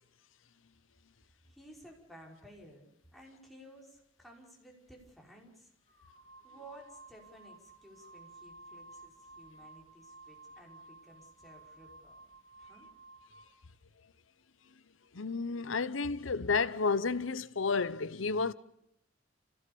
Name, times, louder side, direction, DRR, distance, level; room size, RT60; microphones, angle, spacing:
voice 1, 1.5-6.0 6.4-12.2 12.6-12.9, right 1 dB, ahead, 5.4 m, -55 dB
sound 1, 5.9-13.6, right 2 dB, 25° left, 1.9 m, -55 dB
voice 2, 15.1-18.5, left 4 dB, 80° left, 0.8 m, -31 dB
29.0 x 17.0 x 7.0 m
head